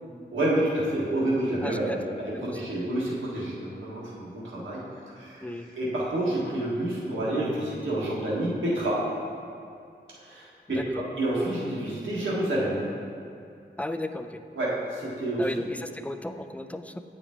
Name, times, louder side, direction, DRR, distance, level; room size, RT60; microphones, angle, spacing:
voice 1, 0.3-5.4 5.8-9.0 10.1-12.9 14.5-15.5, right 1 dB, 85° right, -6 dB, 1.6 m, -29 dB
voice 2, 1.6-2.6 5.4-5.7 10.7-11.0 13.8-14.4 15.4-17.0, left 1 dB, 5° left, 8 dB, 0.4 m, -35 dB
8.3 x 5.1 x 3.7 m, 2.4 s
cardioid pair, 45°, 19 cm